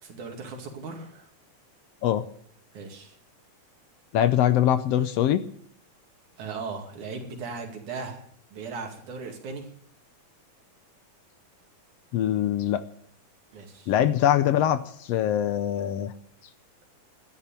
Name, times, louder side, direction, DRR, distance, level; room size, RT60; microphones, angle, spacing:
voice 1, 0.0-1.2 2.7-3.1 6.4-8.3 8.5-9.7 13.5-13.9, right 4 dB, 85° right, 3 dB, 3.8 m, -37 dB
voice 2, 4.1-5.4 12.1-12.8 13.9-14.8 15.1-16.1, left 11 dB, 75° left, 12 dB, 1.6 m, -23 dB
13.0 x 10.5 x 8.7 m, 0.63 s
omnidirectional pair, 3.4 m